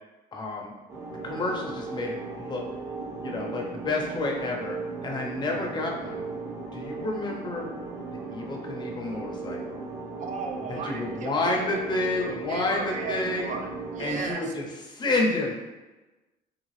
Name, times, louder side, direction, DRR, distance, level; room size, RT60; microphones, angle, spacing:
voice 1, 0.3-0.7 1.2-2.6 3.2-4.8 5.0-6.2 6.6-7.7 8.1-9.8 10.7-13.5 14.0-15.5, left 2 dB, 25° left, 0 dB, 0.6 m, -30 dB
sound 1, 0.9-14.3, right 3 dB, 20° right, 0.7 m, -37 dB
voice 2, 10.2-14.4, right 5 dB, 45° right, 3 dB, 0.4 m, -36 dB
2.7 x 2.2 x 3.1 m, 1.1 s
cardioid pair, 110°, 17 cm